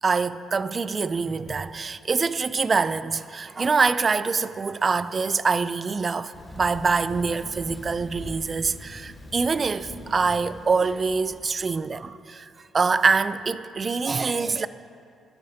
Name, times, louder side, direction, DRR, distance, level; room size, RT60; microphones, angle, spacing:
voice 1, 0.0-14.7, right 4 dB, 35° right, 0.3 m, -25 dB
Thunder, 6.3-11.7, left 1 dB, 15° left, 2.3 m, -42 dB
11.0 x 5.4 x 6.4 m
cardioid pair, 90°, 0 cm